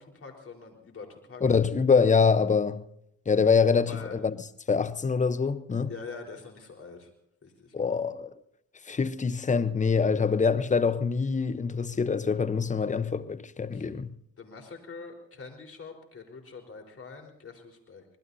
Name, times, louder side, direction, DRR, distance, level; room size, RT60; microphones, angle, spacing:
voice 1, 0.0-1.4 3.8-4.2 5.9-7.1 7.4-8.1 13.7-13.9 14.4-18.0, left 4 dB, 45° left, 4.4 m, -44 dB
voice 2, 1.4-2.8 3.3-4.3 4.7-5.9 7.7-8.3 8.9-14.1, left 5 dB, 25° left, 0.9 m, -25 dB
25.0 x 20.5 x 2.8 m
supercardioid pair, 65°, 32 cm